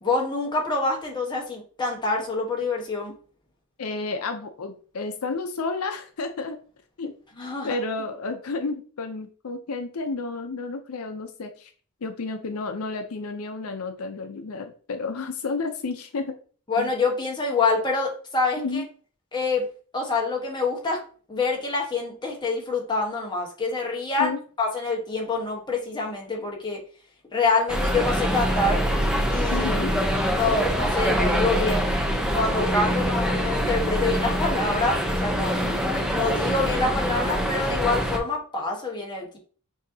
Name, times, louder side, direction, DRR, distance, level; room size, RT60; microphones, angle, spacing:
voice 1, 0.0-3.1 7.4-7.8 16.7-18.8 19.3-19.7 19.9-21.0 21.3-24.3 24.6-26.8 27.3-28.8 29.3-29.9 30.3-31.9 32.3-35.6 36.1-39.4, left 3 dB, 20° left, -1 dB, 1.1 m, -26 dB
voice 2, 3.8-6.6 7.0-7.1 7.6-11.7 12.0-16.3 16.8-16.9 18.6-18.9 24.2-24.4 29.5-30.0, left 3 dB, 80° left, 7 dB, 0.5 m, -31 dB
sound 1, 27.7-38.2, equal, 5° right, 0.6 m, -24 dB
6.2 x 2.8 x 2.7 m, 0.41 s
head